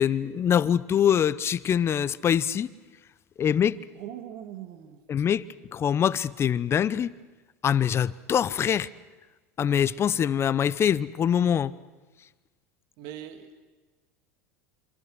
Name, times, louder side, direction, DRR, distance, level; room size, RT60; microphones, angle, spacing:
voice 1, 0.0-2.7 3.4-3.8 5.1-5.5 5.7-7.1 7.6-8.9 9.6-11.7, left 9 dB, 35° left, 0.8 m, -24 dB
voice 2, 4.0-5.0 13.0-13.5, right 11 dB, 60° right, 1.9 m, -40 dB
27.0 x 25.5 x 6.3 m
hypercardioid pair, 85°, 8 cm